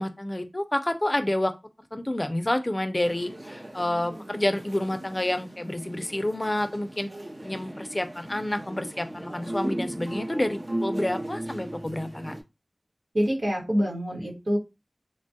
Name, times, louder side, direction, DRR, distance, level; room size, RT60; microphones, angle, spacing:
voice 1, 0.0-1.5 1.9-7.1 7.4-12.3, left 1 dB, 35° left, 9 dB, 0.4 m, -29 dB
sound 1, 3.0-12.4, right 1 dB, 50° right, 0.6 m, -37 dB
voice 2, 13.1-14.6, equal, 90° right, -4 dB, 1.3 m, -26 dB
3.1 x 2.2 x 2.7 m, 0.25 s
wide cardioid pair, 40°, 0 cm